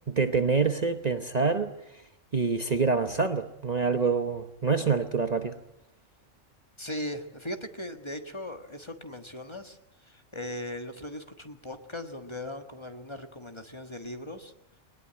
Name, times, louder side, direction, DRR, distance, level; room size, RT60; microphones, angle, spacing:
voice 1, 0.1-1.7 2.3-5.6, right 4 dB, 35° right, 8 dB, 1.0 m, -26 dB
voice 2, 6.8-9.8 10.1-14.5, left 1 dB, 25° left, 6 dB, 1.4 m, -38 dB
22.0 x 19.5 x 8.8 m, 0.83 s
omnidirectional pair, 1.3 m